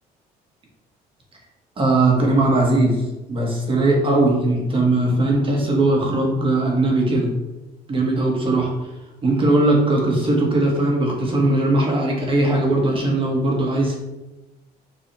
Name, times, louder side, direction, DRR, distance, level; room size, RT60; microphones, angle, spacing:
voice 1, 1.8-3.0 3.3-7.3 7.9-8.7 9.2-14.0, right 2 dB, 30° right, -1 dB, 1.9 m, -19 dB
7.3 x 4.5 x 3.5 m, 1.0 s
cardioid pair, 110°, 17 cm